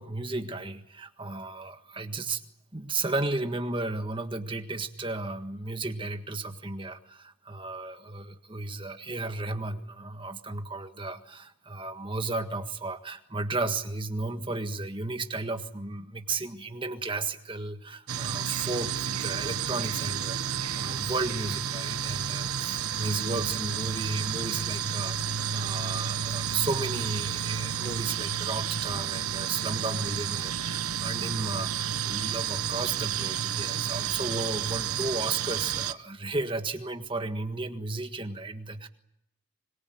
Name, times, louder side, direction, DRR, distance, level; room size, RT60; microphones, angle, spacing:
voice 1, 0.0-2.4 2.7-38.9, right 3 dB, 25° right, 7 dB, 1.6 m, -34 dB
sound 1, 18.1-35.9, right 8 dB, 90° right, 1.1 m, -31 dB
25.5 x 22.5 x 9.3 m, 0.77 s
head